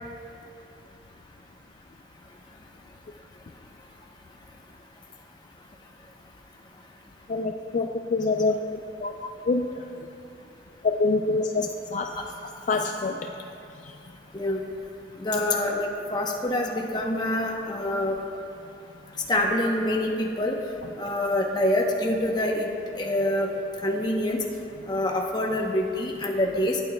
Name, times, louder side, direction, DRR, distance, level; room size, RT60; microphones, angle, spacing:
voice 1, 7.3-8.5 9.0-9.1 9.5-9.7 10.8-11.4 11.9-12.1 12.7-13.1, left 3 dB, 45° left, 3 dB, 0.3 m, -24 dB
voice 2, 15.2-18.2 19.3-20.5 21.0-22.7 23.0-23.5 23.8-24.4 24.9-26.8, left 1 dB, 25° left, 0 dB, 0.9 m, -26 dB
15.5 x 8.7 x 2.2 m, 2.7 s
head